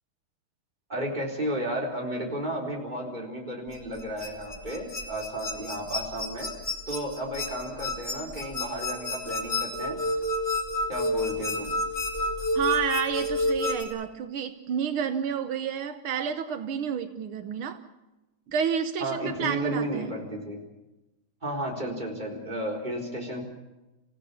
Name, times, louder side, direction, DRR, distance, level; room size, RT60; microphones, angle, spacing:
voice 1, 0.9-6.5 6.9-10.0 10.9-11.8 19.0-20.6 21.4-23.4, right 1 dB, 20° right, -1 dB, 4.3 m, -33 dB
sound 1, 3.7-13.8, left 1 dB, 25° left, 2.7 m, -30 dB
voice 2, 12.6-17.8 18.5-20.1, right 8 dB, 80° right, 8 dB, 1.9 m, -30 dB
28.0 x 16.5 x 7.0 m, 1.0 s
omnidirectional pair, 2.3 m